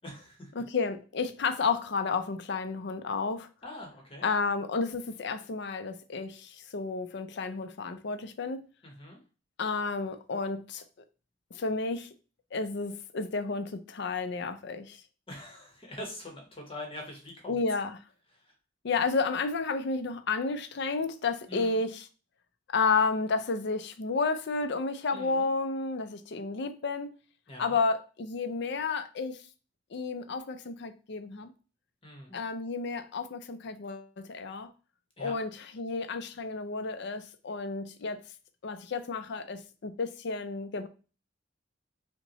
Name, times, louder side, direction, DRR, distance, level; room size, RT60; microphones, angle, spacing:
voice 1, 0.0-0.5 3.6-4.3 8.8-9.2 15.3-17.6 18.3-18.5 21.5-21.8 25.1-25.5 27.5-27.8 32.0-32.4 35.2-35.3, left 1 dB, 30° left, 1.0 m, -44 dB
voice 2, 0.6-3.5 4.2-8.6 9.6-10.8 11.5-12.1 12.5-15.0 17.5-18.0 18.8-22.1 22.7-27.1 27.6-29.4 29.9-31.5 32.3-34.7 35.2-38.2 38.6-40.9, left 4 dB, 65° left, 0.5 m, -31 dB
5.3 x 2.2 x 2.9 m
head